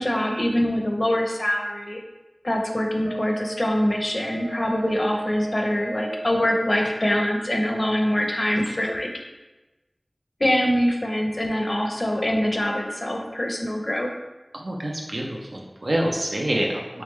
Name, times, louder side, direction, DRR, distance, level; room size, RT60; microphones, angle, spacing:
voice 1, 0.0-2.0 2.4-9.1 10.4-14.1, equal, 50° left, 1 dB, 0.6 m, -24 dB
Wind instrument woodwind instrument, 3.0-6.6, right 2 dB, 35° right, 0.9 m, -36 dB
voice 2, 14.5-17.0, right 1 dB, 85° right, -1 dB, 0.6 m, -27 dB
3.6 x 3.4 x 3.1 m, 1.1 s
wide cardioid pair, 45°, 0 cm